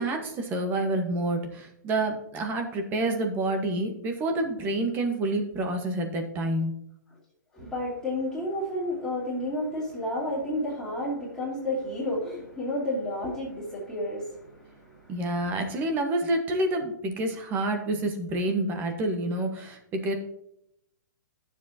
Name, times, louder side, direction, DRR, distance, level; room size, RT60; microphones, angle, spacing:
voice 1, 0.0-6.7 15.1-20.1, right 2 dB, 20° right, 5 dB, 1.3 m, -28 dB
voice 2, 7.5-15.2, left 1 dB, 5° left, -11 dB, 2.5 m, -31 dB
12.0 x 7.3 x 2.9 m, 0.76 s
hypercardioid pair, 155°, 10 cm